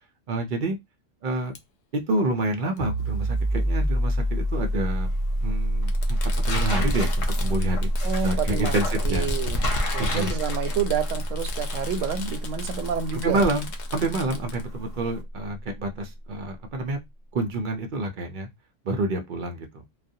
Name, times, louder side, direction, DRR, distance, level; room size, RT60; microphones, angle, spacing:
voice 1, 0.3-0.8 1.2-1.5 1.9-5.1 5.4-5.9 6.5-7.1 7.4-7.9 8.2-9.3 10.0-10.3 13.2-17.0 17.3-18.5 18.8-19.7, right 2 dB, 60° right, 0.5 m, -28 dB
Fireworks, 1.5-1.6 2.8-2.9 4.1-4.2 5.9-14.6, left 2 dB, 65° left, 0.4 m, -34 dB
sound 1, 2.8-14.2, equal, 30° left, 0.9 m, -26 dB
sound 2, 3.0-15.2, left 2 dB, 85° left, 1.1 m, -38 dB
voice 2, 8.0-8.7 9.0-9.7 9.9-13.5, right 7 dB, 90° right, 0.9 m, -29 dB
2.3 x 2.1 x 2.6 m
omnidirectional pair, 1.3 m